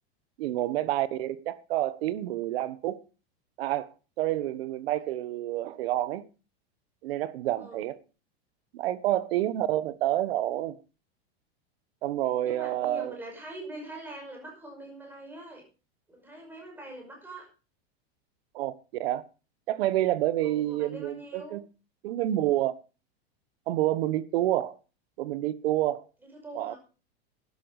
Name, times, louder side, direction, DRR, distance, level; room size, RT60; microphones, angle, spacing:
voice 1, 0.4-3.0 3.6-3.9 4.2-6.2 7.0-8.0 8.7-10.8 12.0-13.1 18.5-18.7 19.0-19.2 19.7-21.6 22.0-22.7 23.7-24.8 25.2-26.0 26.5-26.8, right 14 dB, 65° right, 1.3 m, -28 dB
voice 2, 12.4-15.6 16.1-17.5 20.4-21.6 26.3-26.8, right 1 dB, 5° right, 5.6 m, -43 dB
12.0 x 11.5 x 4.8 m
supercardioid pair, 160°, 32 cm